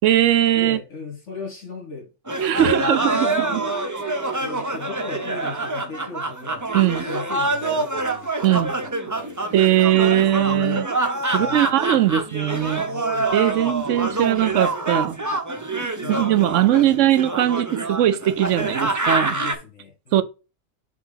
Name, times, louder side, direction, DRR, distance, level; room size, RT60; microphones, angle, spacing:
voice 1, 0.0-0.8 2.4-3.6 6.7-7.1 8.4-8.7 9.5-10.9 11.3-12.9 13.3-15.2 16.1-19.4 20.1-20.2, right 12 dB, 75° right, 1.0 m, -20 dB
voice 2, 0.6-2.1 2.6-3.7 4.4-6.6 7.1-9.4 10.0-10.9 11.3-11.8 12.8-14.7 16.0-16.2 16.5-17.3 19.3-20.2, left 4 dB, 65° left, 2.4 m, -37 dB
sound 1, 2.3-19.5, right 2 dB, 15° right, 0.7 m, -26 dB
6.2 x 3.4 x 5.7 m
omnidirectional pair, 1.3 m